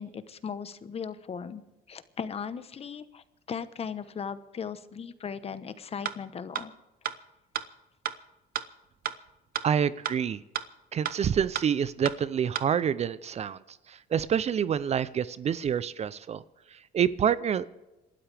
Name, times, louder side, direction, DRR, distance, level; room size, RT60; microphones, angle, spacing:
voice 1, 0.0-1.6 1.9-6.7, left 6 dB, 35° left, 13 dB, 1.0 m, -37 dB
sound 1, 6.0-6.1 6.5-6.6 7.0-7.1 7.5-7.6 8.0-8.1 8.5-8.6 9.0-9.1 9.5-9.6 10.0-10.1 10.5-10.6 11.0-11.1 11.5-11.6 12.0-12.1 12.5-12.6, right 10 dB, 60° right, 0.9 m, -30 dB
voice 2, 9.6-10.4 10.9-13.6 13.9-16.4 16.7-17.7, right 8 dB, 40° right, 17 dB, 0.6 m, -27 dB
28.0 x 12.5 x 3.5 m, 1.1 s
cardioid pair, 110°, 17 cm